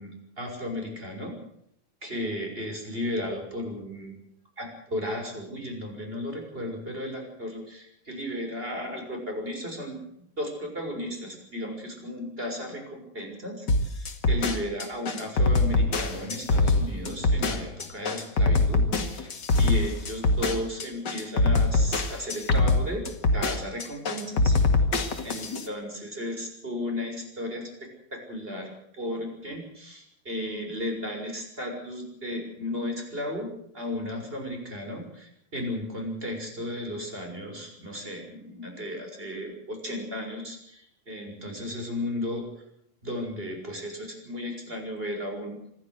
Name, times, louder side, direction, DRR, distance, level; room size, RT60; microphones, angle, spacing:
voice 1, 0.0-1.3 2.0-4.1 4.6-10.0 10.4-19.3 19.6-23.0 23.3-24.6 25.2-33.5 33.7-42.4 43.0-45.6, left 1 dB, 15° right, 3 dB, 6.5 m, -34 dB
sound 1, 13.7-25.7, left 2 dB, 35° left, 1.9 m, -23 dB
25.5 x 15.0 x 8.1 m, 0.73 s
omnidirectional pair, 4.4 m